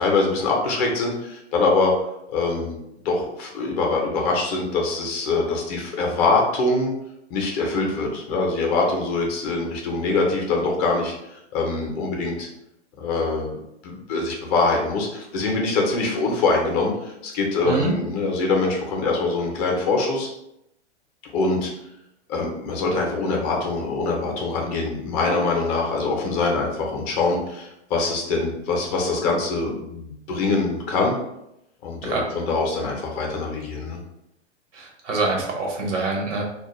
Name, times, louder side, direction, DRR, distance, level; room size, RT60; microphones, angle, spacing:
voice 1, 0.0-1.9 2.3-2.8 3.0-6.9 7.3-11.1 11.5-12.5 13.0-13.6 13.8-20.3 21.3-21.7 22.3-31.2 31.8-34.0, left 3 dB, 35° left, 0 dB, 0.5 m, -23 dB
voice 2, 17.6-17.9 32.0-32.2 34.7-36.4, right 3 dB, 85° right, 0 dB, 0.9 m, -25 dB
2.3 x 2.0 x 3.0 m, 0.82 s
hypercardioid pair, 135°, 35 cm